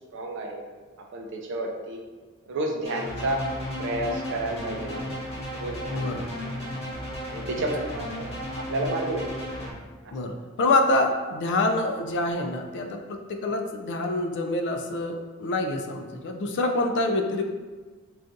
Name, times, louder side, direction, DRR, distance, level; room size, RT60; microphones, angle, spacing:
voice 1, 0.1-0.6 1.1-2.0 2.5-3.4 3.8-5.0 5.6-6.1 7.3-8.3 8.6-9.2, right 1 dB, 55° right, 1 dB, 0.4 m, -30 dB
sound 1, 2.8-9.7, equal, 30° left, 0.8 m, -34 dB
voice 2, 5.9-6.3 10.1-17.5, left 2 dB, 55° left, 4 dB, 0.3 m, -26 dB
2.5 x 2.3 x 3.8 m, 1.4 s
head